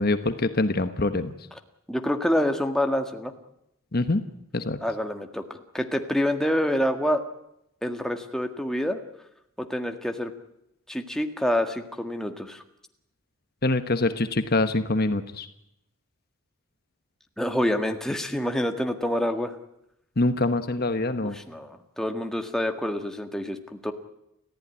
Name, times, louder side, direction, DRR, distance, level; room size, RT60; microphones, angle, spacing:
voice 1, 0.0-1.3 3.9-4.2 4.5-4.8 13.6-15.5 20.2-21.3, left 2 dB, 45° left, 9 dB, 1.1 m, -24 dB
voice 2, 1.9-3.3 4.8-7.2 7.8-9.0 9.6-10.3 10.9-12.6 17.4-19.6 21.3-23.9, equal, ahead, 4 dB, 1.7 m, -27 dB
29.5 x 14.5 x 9.8 m, 0.83 s
head